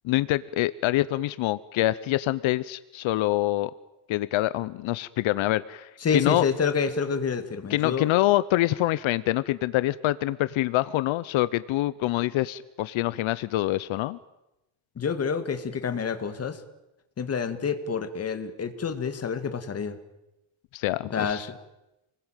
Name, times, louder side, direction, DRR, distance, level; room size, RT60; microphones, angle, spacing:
voice 1, 0.0-3.7 4.1-6.4 7.7-14.2 20.7-21.5, left 16 dB, 80° left, 16 dB, 0.9 m, -25 dB
voice 2, 6.0-8.1 15.0-16.6 17.2-20.0 21.1-21.5, left 6 dB, 30° left, 9 dB, 2.1 m, -28 dB
28.5 x 21.0 x 9.1 m, 0.94 s
cardioid pair, 165°, 47 cm